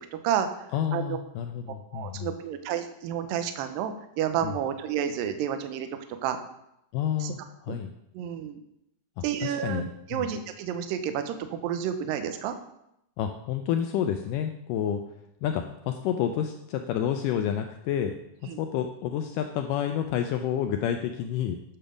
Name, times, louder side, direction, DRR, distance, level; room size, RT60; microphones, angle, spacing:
voice 1, 0.7-2.4 4.4-4.5 6.9-7.9 9.2-10.3 13.2-15.0 15.4-18.1 18.6-21.8, left 9 dB, 85° left, 6 dB, 1.8 m, -29 dB
voice 2, 1.9-5.9 6.2-6.4 7.2-7.3 7.7-7.8 8.1-8.6 9.2-9.8 10.1-12.5 18.5-18.6, right 9 dB, 75° right, 8 dB, 2.3 m, -30 dB
9.0 x 6.7 x 5.1 m, 0.81 s
omnidirectional pair, 4.4 m